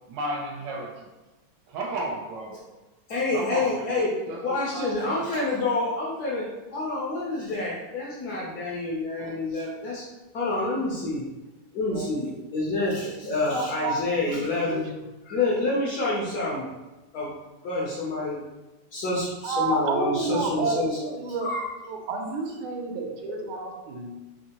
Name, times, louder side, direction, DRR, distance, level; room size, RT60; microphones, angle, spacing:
voice 1, 0.1-1.1 1.7-2.7 3.3-4.0 4.3-4.4 4.7-5.5, right 2 dB, 75° right, 0 dB, 1.1 m, -34 dB
voice 2, 3.1-4.1 4.4-6.5 6.7-10.0 10.3-11.2 11.7-14.9 15.3-16.7 17.1-17.3 17.6-18.4 18.9-21.1 21.4-21.6 23.3-23.5, left 2 dB, 65° left, -5 dB, 1.0 m, -28 dB
voice 3, 13.2-14.8 19.4-20.8 21.2-21.5 21.9-24.1, right 3 dB, 90° right, 2 dB, 1.5 m, -30 dB
3.6 x 3.2 x 2.9 m, 1.1 s
omnidirectional pair, 2.3 m